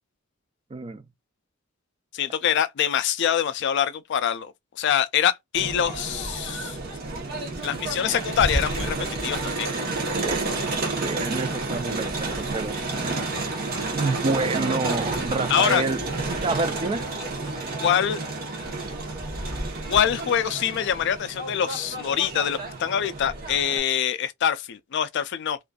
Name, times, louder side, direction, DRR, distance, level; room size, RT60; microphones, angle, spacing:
voice 1, 0.7-1.0 10.2-10.4 11.0-13.1 13.9-16.0 16.3-17.0, right 3 dB, 25° right, 0.3 m, -28 dB
voice 2, 2.1-6.8 7.6-9.7 15.5-15.8 17.8-18.2 19.9-25.6, left 9 dB, 55° left, 0.3 m, -24 dB
Crowd, 5.5-23.8, right 3 dB, 45° right, 0.8 m, -30 dB
2.5 x 2.3 x 2.2 m
head